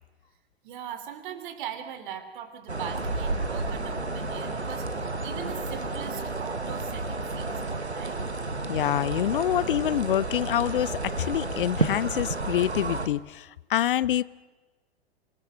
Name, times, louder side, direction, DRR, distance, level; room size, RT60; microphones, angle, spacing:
voice 1, 0.6-8.2, right 9 dB, 50° right, 10 dB, 3.0 m, -40 dB
sound 1, 2.7-13.1, right 3 dB, 85° right, 1.3 m, -31 dB
voice 2, 8.7-14.2, left 12 dB, 55° left, 20 dB, 0.6 m, -26 dB
25.0 x 20.0 x 6.5 m, 1.2 s
figure-of-eight pair, 95°, 32 cm